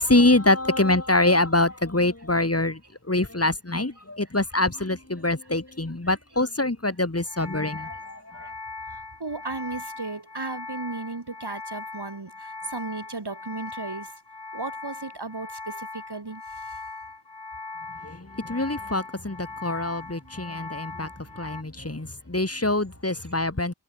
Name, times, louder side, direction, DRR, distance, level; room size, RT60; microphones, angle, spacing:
voice 1, 0.0-2.8 3.1-8.5 18.0-23.7, left 2 dB, 35° left, 3.6 m, -25 dB
sound 1, 7.2-21.6, left 3 dB, 85° left, 7.9 m, -39 dB
voice 2, 8.9-14.1 14.5-16.4 16.7-16.8, right 3 dB, 70° right, 4.9 m, -35 dB
wide cardioid pair, 55°, 41 cm